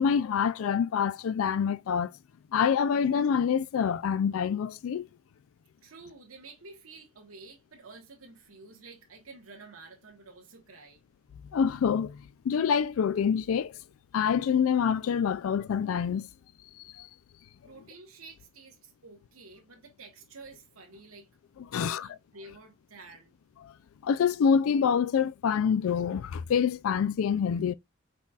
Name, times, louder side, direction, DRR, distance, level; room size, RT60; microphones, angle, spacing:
voice 1, 0.0-2.1 2.5-5.1 11.5-13.8 14.1-16.3 16.8-17.1 21.7-22.2 23.6-23.7 24.0-27.7, left 7 dB, 85° left, 0.3 m, -26 dB
voice 2, 5.8-11.0 17.6-21.3 21.6-23.3, right 3 dB, 90° right, 1.2 m, -50 dB
5.4 x 4.1 x 2.4 m
head